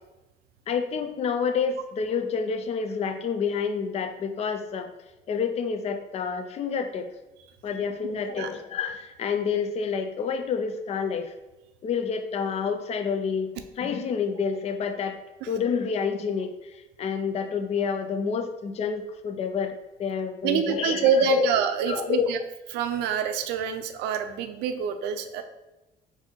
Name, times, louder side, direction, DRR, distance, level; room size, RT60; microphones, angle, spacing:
voice 1, 0.7-4.9 5.3-7.1 7.6-11.3 11.8-15.2 15.5-21.5 21.8-22.3, left 6 dB, 40° left, 7 dB, 0.4 m, -28 dB
voice 2, 8.1-8.5 20.4-22.4 22.7-25.4, right 6 dB, 85° right, 8 dB, 0.5 m, -26 dB
4.1 x 2.7 x 4.4 m, 1.0 s
cardioid pair, 110°, 17 cm